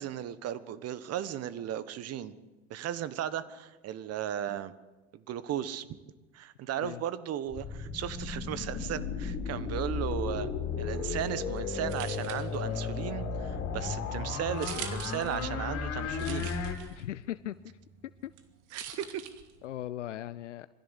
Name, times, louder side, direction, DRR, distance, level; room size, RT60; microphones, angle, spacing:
voice 1, 0.0-2.3 2.7-4.7 5.1-5.9 6.3-10.5 10.8-16.5 18.7-19.2, right 10 dB, 45° right, 15 dB, 1.4 m, -36 dB
sound 1, 7.5-16.7, left 5 dB, 45° left, 4.0 m, -34 dB
sound 2, 11.1-19.9, right 9 dB, 60° right, 2.5 m, -47 dB
voice 2, 16.9-17.5 18.2-18.3 19.6-20.7, left 13 dB, 90° left, 15 dB, 0.6 m, -38 dB
22.0 x 16.0 x 8.3 m, 1.2 s
hypercardioid pair, 85°, 35 cm